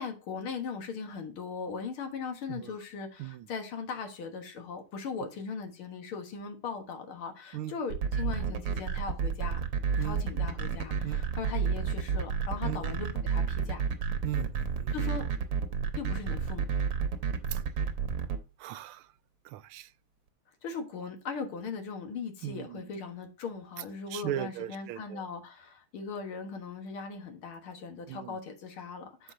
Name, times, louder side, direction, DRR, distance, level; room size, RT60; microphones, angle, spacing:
voice 1, 0.0-9.6 10.0-13.8 14.9-15.2 16.0-16.7 20.6-29.3, left 5 dB, 85° left, 2.3 m, -39 dB
sound 1, 7.9-18.4, right 6 dB, 65° right, 1.6 m, -30 dB
voice 2, 14.2-14.9 17.5-17.6 18.6-19.1 19.4-19.9 22.4-22.8 24.1-25.2 28.1-28.4, right 13 dB, 90° right, 1.5 m, -38 dB
12.5 x 4.6 x 2.7 m
omnidirectional pair, 2.3 m